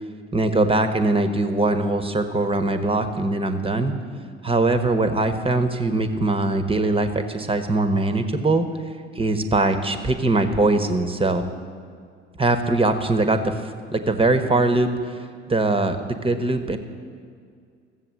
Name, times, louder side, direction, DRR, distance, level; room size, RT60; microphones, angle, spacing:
voice 1, 0.3-3.9 4.4-8.7 9.1-11.4 12.4-16.8, right 2 dB, 15° right, 7 dB, 1.3 m, -22 dB
14.5 x 7.5 x 7.6 m, 2.1 s
hypercardioid pair, 55°, 34 cm